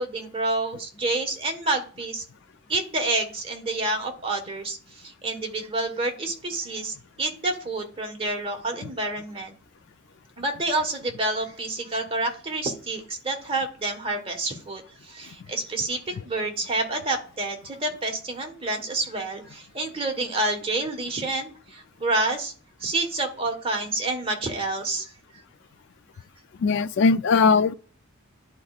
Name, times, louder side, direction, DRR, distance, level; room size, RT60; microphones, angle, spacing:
voice 1, 0.0-2.2 2.7-9.5 10.4-22.5 22.8-25.1, right 2 dB, 25° right, 1.3 m, -28 dB
voice 2, 26.6-27.7, left 4 dB, 55° left, 0.3 m, -19 dB
11.0 x 4.4 x 2.4 m
head